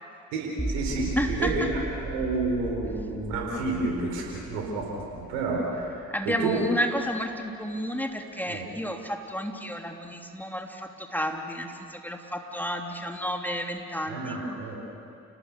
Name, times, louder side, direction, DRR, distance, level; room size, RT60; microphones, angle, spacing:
voice 1, 0.3-6.6 8.5-8.6 14.1-14.8, right 3 dB, 80° right, -1 dB, 4.4 m, -30 dB
sound 1, 0.6-6.7, right 2 dB, 15° right, 2.5 m, -37 dB
voice 2, 1.2-1.7 2.9-3.0 6.1-14.4, equal, 5° left, 2 dB, 3.2 m, -31 dB
30.0 x 19.0 x 8.3 m, 2.7 s
hypercardioid pair, 40°, 38 cm